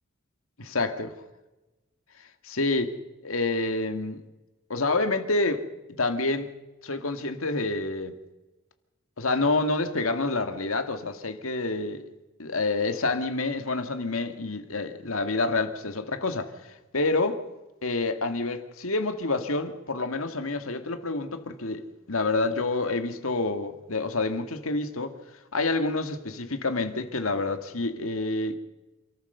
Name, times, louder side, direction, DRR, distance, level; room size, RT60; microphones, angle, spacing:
voice 1, 0.6-1.1 2.4-2.9 3.2-4.2 4.7-5.6 6.0-6.5 6.8-8.2 9.2-12.0 12.4-17.4 17.8-25.1 25.5-28.6, left 3 dB, 80° left, 2.0 m, -28 dB
27.5 x 14.0 x 6.8 m
head